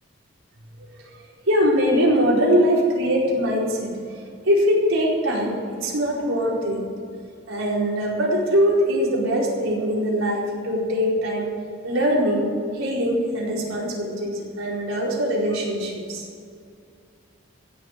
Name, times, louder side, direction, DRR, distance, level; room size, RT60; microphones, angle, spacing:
voice 1, 1.5-3.9 4.4-5.5 5.8-6.8 7.5-11.5 11.8-12.5 12.7-16.3, equal, 85° right, -4 dB, 4.6 m, -22 dB
16.5 x 7.4 x 8.7 m, 2.4 s
head